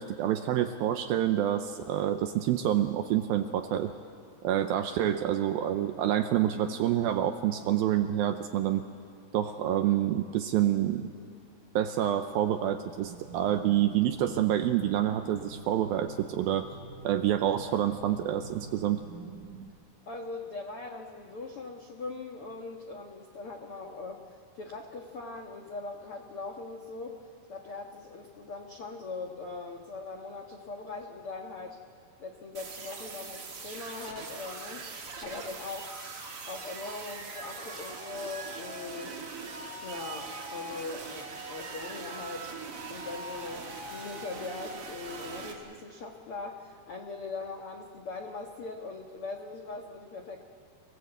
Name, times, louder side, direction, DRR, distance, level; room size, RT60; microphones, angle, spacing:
voice 1, 0.0-3.9 4.4-8.9 9.3-11.1 11.8-16.7 17.0-19.0, right 11 dB, 80° right, 7 dB, 2.2 m, -27 dB
sound 1, 13.0-19.7, right 4 dB, 65° right, 2.2 m, -48 dB
voice 2, 20.1-31.8 32.2-35.9 36.5-39.2 39.8-42.5 42.9-50.4, left 3 dB, 90° left, 2 dB, 1.2 m, -41 dB
sound 2, 32.5-45.5, right 3 dB, 40° right, 2.6 m, -41 dB
29.5 x 19.5 x 8.1 m, 2.2 s
omnidirectional pair, 5.0 m